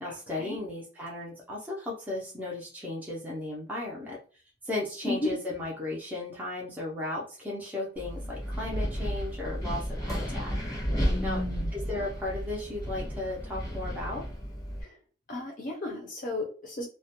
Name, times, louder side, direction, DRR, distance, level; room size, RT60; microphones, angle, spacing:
voice 1, 0.0-4.2 4.6-10.5 11.2-11.4 11.7-14.2, left 2 dB, 10° right, -5 dB, 0.6 m, -35 dB
Wind, 8.0-14.8, equal, 20° left, 0.8 m, -33 dB
voice 2, 11.1-11.7 14.8-14.9 15.3-16.8, left 2 dB, 45° left, 0 dB, 0.6 m, -33 dB
2.3 x 2.1 x 2.8 m, 0.38 s
head